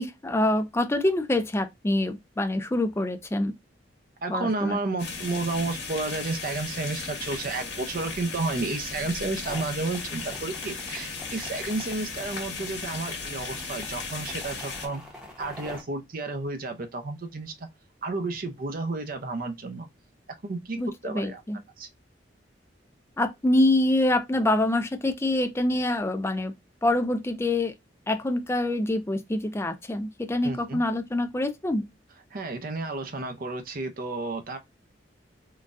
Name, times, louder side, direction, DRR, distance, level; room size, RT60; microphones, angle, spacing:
voice 1, 0.0-3.5 4.3-4.8 20.8-21.6 23.2-26.5 26.8-27.7 28.1-31.9, left 1 dB, 15° left, 0.4 m, -25 dB
voice 2, 4.2-15.0 15.4-17.5 18.0-19.9 20.4-21.4 21.8-21.9 30.4-30.8 32.3-34.6, right 3 dB, 50° right, 0.6 m, -31 dB
sound 1, 5.0-14.9, left 4 dB, 70° left, 1.3 m, -36 dB
sound 2, 9.4-15.8, left 1 dB, 5° right, 1.0 m, -45 dB
3.9 x 2.3 x 2.5 m
head